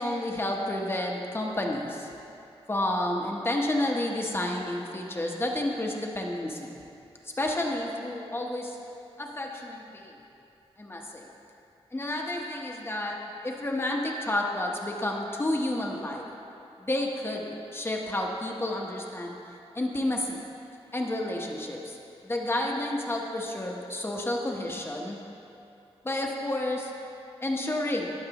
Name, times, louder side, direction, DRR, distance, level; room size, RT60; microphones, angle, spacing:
voice 1, 0.0-2.1 2.7-6.8 7.4-8.8 9.2-10.2 10.8-11.3 11.9-16.3 16.8-19.4 19.7-20.4 20.9-22.0 22.2-25.2 26.0-26.9 27.4-28.1, left 1 dB, 20° left, 0 dB, 0.9 m, -30 dB
18.5 x 7.3 x 2.9 m, 2.7 s
wide cardioid pair, 160°, 11 cm